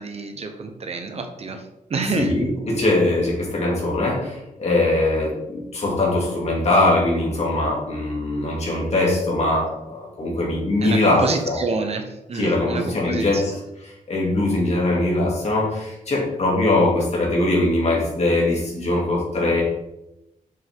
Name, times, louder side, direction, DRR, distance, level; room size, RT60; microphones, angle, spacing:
voice 1, 0.0-1.6 1.9-2.3 10.8-12.0 12.3-13.4, right 3 dB, 50° right, 6 dB, 0.9 m, -27 dB
voice 2, 2.0-11.6 12.3-19.6, left 2 dB, 50° left, -3 dB, 2.5 m, -21 dB
7.0 x 6.4 x 3.6 m, 0.93 s
wide cardioid pair, 135°, 14 cm